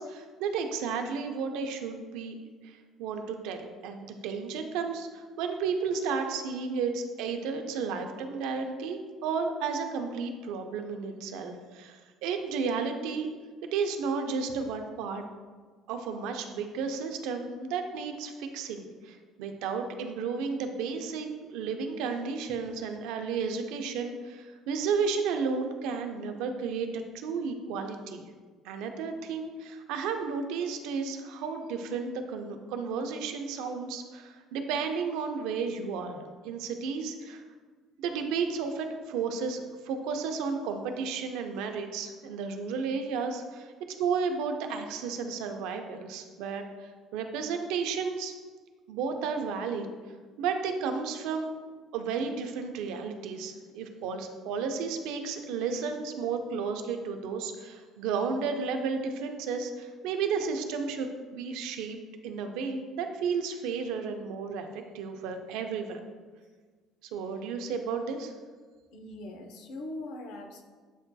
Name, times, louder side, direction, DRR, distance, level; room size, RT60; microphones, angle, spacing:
voice 1, 0.0-13.3 13.7-15.2 15.9-28.2 28.6-37.4 38.0-43.7 44.0-48.4 48.9-49.9 50.4-51.5 51.9-62.0 62.2-66.0 67.1-68.3, right 5 dB, 90° right, 5 dB, 0.4 m, -33 dB
voice 2, 68.9-70.6, left 2 dB, 75° left, 4 dB, 0.5 m, -41 dB
7.9 x 2.6 x 2.2 m, 1.5 s
cardioid pair, 170°, 0 cm